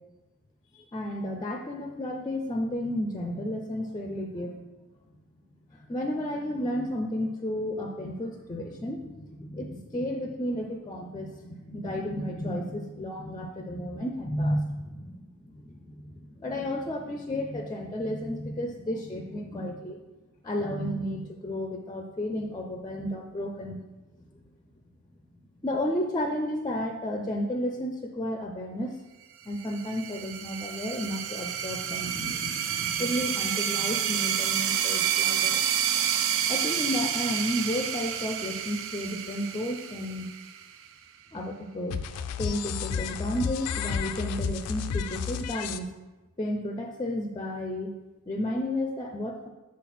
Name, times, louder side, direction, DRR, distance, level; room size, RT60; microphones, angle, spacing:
voice 1, 0.7-4.6 5.7-20.0 20.4-23.8 24.2-24.5 25.6-29.0 29.5-35.6 36.5-40.3 41.3-42.0 42.4-45.9 46.4-47.9 48.3-49.5, left 1 dB, 20° left, 3 dB, 0.4 m, -32 dB
sound 1, 29.6-40.9, right 9 dB, 60° right, 0.4 m, -29 dB
sound 2, 41.9-45.8, left 7 dB, 85° left, 0.4 m, -32 dB
6.3 x 4.1 x 4.1 m, 1.1 s
head